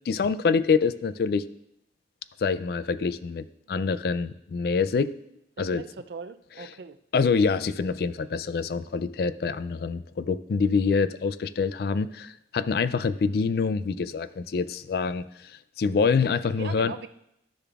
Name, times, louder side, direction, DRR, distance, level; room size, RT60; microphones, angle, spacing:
voice 1, 0.1-1.4 2.4-5.1 5.6-5.8 7.1-16.9, left 5 dB, 55° left, 14 dB, 0.3 m, -26 dB
voice 2, 5.6-7.0 16.4-17.1, right 5 dB, 65° right, 11 dB, 0.4 m, -40 dB
12.0 x 6.7 x 2.4 m, 0.78 s
head